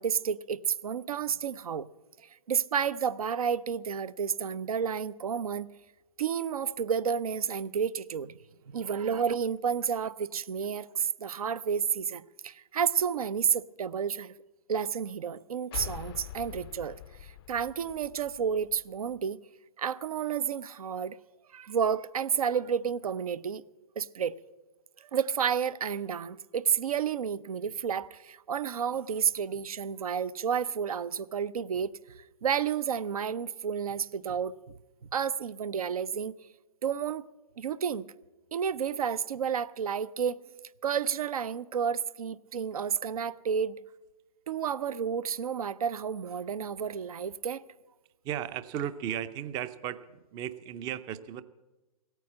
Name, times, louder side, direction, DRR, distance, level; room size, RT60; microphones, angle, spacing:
voice 1, 0.0-1.9 2.5-5.7 6.2-8.3 8.7-14.3 14.7-19.4 19.8-21.2 21.5-23.6 24.0-24.3 25.0-31.9 32.4-34.6 35.1-36.3 36.8-37.3 37.6-38.0 38.5-40.4 40.8-43.8 44.5-47.6, right 7 dB, 70° right, 0.6 m, -31 dB
sound 1, 15.7-19.2, left 12 dB, 40° left, 0.5 m, -44 dB
voice 2, 48.2-51.4, right 10 dB, 20° right, 0.5 m, -35 dB
16.5 x 9.2 x 8.5 m
hypercardioid pair, 125°, 19 cm